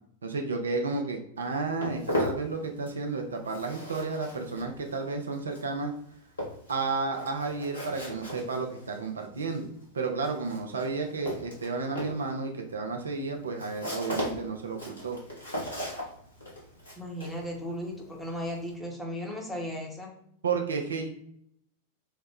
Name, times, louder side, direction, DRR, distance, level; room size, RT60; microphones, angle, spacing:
voice 1, 0.2-5.9 6.7-9.7 9.9-15.2 20.4-21.1, right 4 dB, 70° right, 3 dB, 0.4 m, -32 dB
Walk footsteps, 1.4-3.1 3.3-18.7, left 1 dB, 80° left, 1.1 m, -38 dB
voice 2, 17.0-20.1, equal, 5° left, -1 dB, 0.8 m, -36 dB
3.2 x 2.1 x 3.4 m, 0.69 s
figure-of-eight pair, 90°, 0 cm